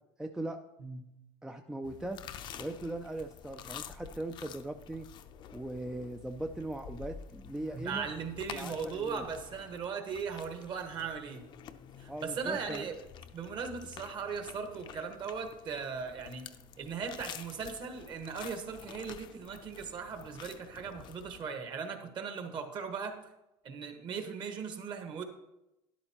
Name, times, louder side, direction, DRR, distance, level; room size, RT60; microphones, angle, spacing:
voice 1, 0.2-0.6 1.4-2.2 2.6-5.1 5.5-8.1 8.5-9.2 12.1-12.9, right 1 dB, 5° right, 6 dB, 0.4 m, -39 dB
sound 1, 1.8-21.4, left 8 dB, 40° left, 0.6 m, -49 dB
voice 2, 7.7-11.5 12.0-12.9 13.3-16.5 16.8-23.1 23.6-25.2, right 6 dB, 40° right, 5 dB, 1.5 m, -38 dB
12.0 x 11.0 x 3.0 m, 0.90 s
cardioid pair, 150°, 12 cm